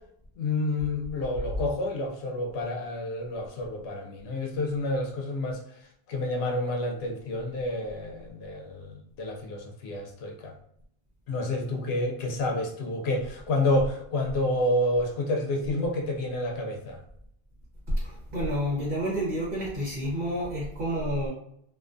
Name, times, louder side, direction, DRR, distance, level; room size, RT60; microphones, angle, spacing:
voice 1, 0.4-5.6 6.1-10.5 11.3-17.0, left 1 dB, 80° left, 2 dB, 0.8 m, -29 dB
voice 2, 18.0-21.3, equal, 60° right, -6 dB, 1.0 m, -29 dB
2.4 x 2.3 x 2.5 m, 0.72 s
omnidirectional pair, 1.0 m